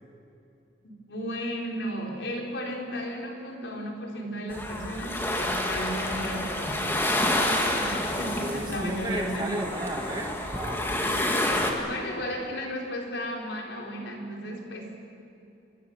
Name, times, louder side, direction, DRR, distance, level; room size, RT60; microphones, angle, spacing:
voice 1, 1.1-7.1 7.7-9.7 11.0-15.0, equal, 80° left, 0 dB, 4.5 m, -35 dB
sound 1, 4.5-11.7, left 1 dB, 15° left, 2.3 m, -28 dB
voice 2, 8.4-10.9, right 1 dB, 25° right, 1 dB, 2.2 m, -33 dB
26.0 x 23.0 x 7.3 m, 2.6 s
head